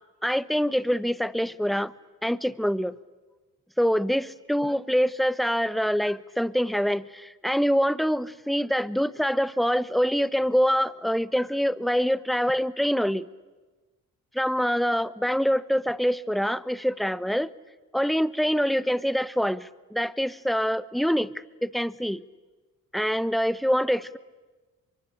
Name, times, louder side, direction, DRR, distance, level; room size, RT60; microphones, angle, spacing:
voice 1, 0.2-1.9 2.2-3.0 3.8-13.3 14.3-17.5 17.9-21.3 21.6-22.2 22.9-24.2, equal, ahead, 17 dB, 1.0 m, -25 dB
23.5 x 23.5 x 10.0 m, 1.3 s
supercardioid pair, 45°, 36 cm